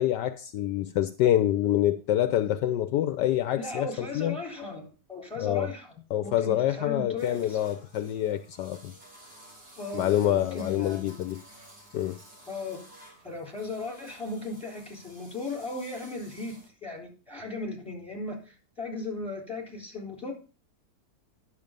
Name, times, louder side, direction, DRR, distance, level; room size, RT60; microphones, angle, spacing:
voice 1, 0.0-4.4 5.4-5.7 6.1-8.9 9.9-11.4 11.9-12.2, left 12 dB, 75° left, 1.2 m, -26 dB
voice 2, 3.5-5.9 6.2-7.6 9.8-11.3 12.5-12.8 13.2-20.3, left 3 dB, 5° left, 3.5 m, -37 dB
sound 1, 7.2-16.7, right 1 dB, 70° right, 5.8 m, -53 dB
11.0 x 7.1 x 5.1 m
omnidirectional pair, 2.0 m